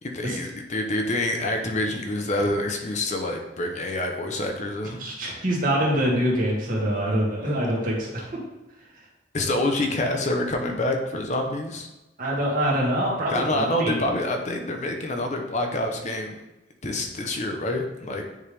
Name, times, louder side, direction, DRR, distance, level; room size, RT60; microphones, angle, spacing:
voice 1, 0.0-5.0 9.3-11.9 13.3-16.4 16.8-18.2, left 1 dB, 40° left, 3 dB, 0.8 m, -27 dB
voice 2, 5.0-8.3 12.2-14.0, equal, 50° right, -5 dB, 2.1 m, -25 dB
9.6 x 3.6 x 3.4 m, 0.97 s
head